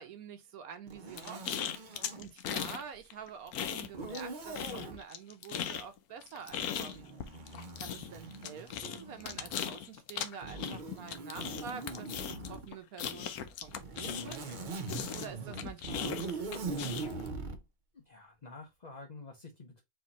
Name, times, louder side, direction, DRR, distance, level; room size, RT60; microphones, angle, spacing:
voice 1, 0.0-1.7 2.2-7.1 7.8-14.5 15.1-16.9, right 7 dB, 65° right, 1.2 m, -47 dB
Zipper (clothing), 0.9-2.3 3.9-5.0 6.4-9.6 10.4-12.7 13.6-17.6, right 3 dB, 40° right, 0.7 m, -42 dB
sound 1, 1.2-2.8 3.1-4.3 4.5-14.5 14.9-17.3, left 9 dB, 70° left, 1.1 m, -38 dB
voice 2, 17.9-19.8, left 3 dB, 40° left, 0.6 m, -49 dB
4.5 x 2.9 x 4.1 m
omnidirectional pair, 1.7 m